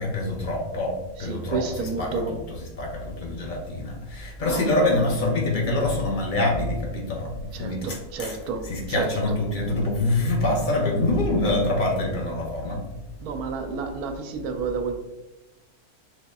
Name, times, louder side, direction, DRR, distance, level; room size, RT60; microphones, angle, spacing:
voice 1, 0.0-1.6 2.0-2.4 2.8-8.4 8.7-12.8, left 2 dB, 55° left, 0 dB, 0.5 m, -25 dB
voice 2, 1.2-2.4 4.4-4.7 7.5-9.4 13.2-15.0, right 4 dB, 85° right, 6 dB, 1.1 m, -31 dB
6.3 x 2.4 x 2.3 m, 1.0 s
omnidirectional pair, 1.6 m